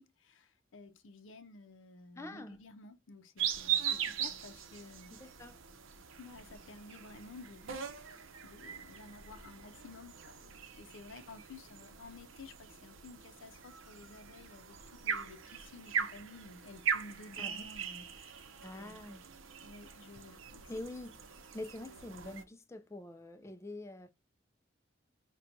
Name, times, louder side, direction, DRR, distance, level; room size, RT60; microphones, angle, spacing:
voice 1, 0.0-5.2 6.2-18.5 18.7-19.0 19.6-20.7, left 3 dB, 80° left, 0.5 m, -53 dB
voice 2, 2.2-2.6 5.1-5.6 17.4-17.7 18.6-19.2 20.7-24.1, left 1 dB, 15° left, 0.3 m, -45 dB
sound 1, 3.4-22.4, right 8 dB, 85° right, 0.7 m, -40 dB
5.7 x 2.2 x 2.6 m
head